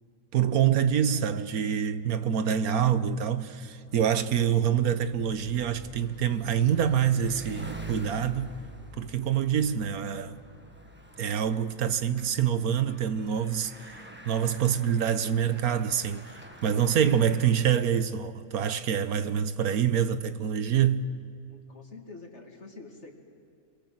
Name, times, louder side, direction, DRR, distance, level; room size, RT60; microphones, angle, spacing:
voice 1, 0.3-8.5 9.0-10.4 11.2-13.7 14.3-21.1, right 8 dB, 80° right, 1.4 m, -26 dB
Bicycle, 3.6-18.1, right 1 dB, 10° right, 1.4 m, -46 dB
voice 2, 21.5-23.1, left 3 dB, 50° left, 2.9 m, -46 dB
30.0 x 23.0 x 7.8 m
omnidirectional pair, 1.5 m